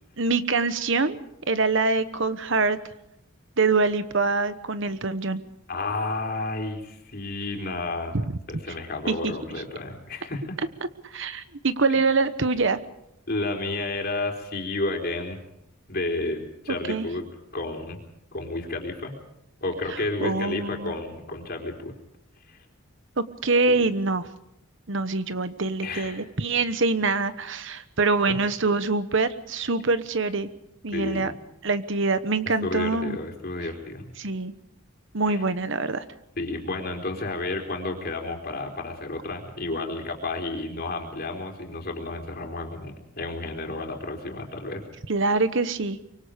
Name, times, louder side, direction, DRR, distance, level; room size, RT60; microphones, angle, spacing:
voice 1, 0.2-1.2 1.5-2.8 3.6-5.4 8.1-8.2 9.1-9.3 11.0-12.8 16.9-17.1 20.2-20.9 23.2-24.3 24.9-30.5 30.8-31.3 31.6-33.2 34.2-34.5 35.1-36.0 45.1-46.0, right 3 dB, 60° right, 12 dB, 1.1 m, -24 dB
voice 2, 5.7-8.2 8.5-10.6 13.3-15.4 15.9-17.2 17.5-18.0 18.3-19.2 19.6-21.9 22.5-22.6 25.8-26.2 28.3-28.4 30.9-31.3 32.6-34.1 35.3-35.4 36.4-44.8, left 2 dB, 45° left, 2 dB, 4.2 m, -31 dB
25.0 x 24.0 x 5.2 m, 0.81 s
head